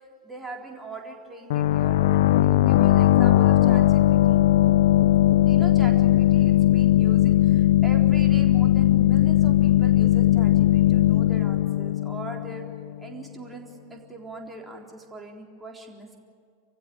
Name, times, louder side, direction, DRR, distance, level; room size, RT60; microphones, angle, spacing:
voice 1, 0.2-4.4 5.4-12.6 13.0-16.2, right 2 dB, 5° right, 0 dB, 3.9 m, -40 dB
sound 1, 1.5-13.0, left 14 dB, 55° left, 0.6 m, -19 dB
29.0 x 15.5 x 9.9 m, 2.2 s
figure-of-eight pair, 90°, 0 cm